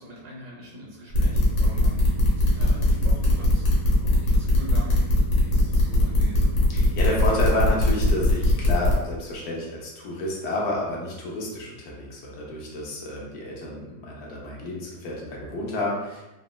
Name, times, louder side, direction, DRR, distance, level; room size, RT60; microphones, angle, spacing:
voice 1, 0.0-5.0 5.4-6.6, right 1 dB, 90° right, -4 dB, 1.6 m, -42 dB
sound 1, 1.1-8.9, left 2 dB, 90° left, 1.5 m, -21 dB
voice 2, 6.7-16.2, left 1 dB, 75° left, -3 dB, 1.3 m, -30 dB
4.0 x 2.0 x 2.2 m, 1.0 s
omnidirectional pair, 1.9 m